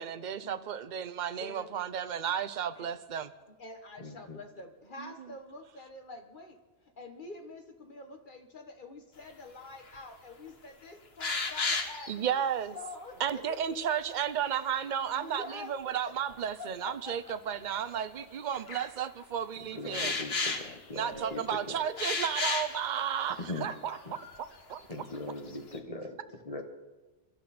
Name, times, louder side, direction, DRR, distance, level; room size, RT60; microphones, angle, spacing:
voice 1, 0.0-3.3 5.0-5.3 12.1-12.8 13.2-20.2 20.9-24.0 24.7-24.8, right 8 dB, 50° right, 11 dB, 0.8 m, -33 dB
voice 2, 1.3-1.7 2.8-2.9 3.6-6.6 7.0-12.4 12.7-13.6 15.1-15.7 16.6-17.1 20.9-22.0 23.4-24.4, left 2 dB, 50° left, 5 dB, 1.5 m, -47 dB
voice 3, 4.0-4.4 19.6-21.8 23.4-23.7 24.0-24.2 24.9-26.2 26.4-26.6, left 2 dB, 35° left, 5 dB, 1.4 m, -40 dB
sound 1, 9.9-10.0 10.5-10.6 11.2-12.1 14.3-15.1 16.3-16.4 17.3-17.4 18.5-18.9 19.9-21.3 22.0-22.8 23.4-23.5 23.8-23.9 24.3-24.8 25.1-25.8, left 4 dB, 70° left, 1.6 m, -33 dB
24.0 x 12.0 x 4.3 m, 1.2 s
omnidirectional pair, 1.1 m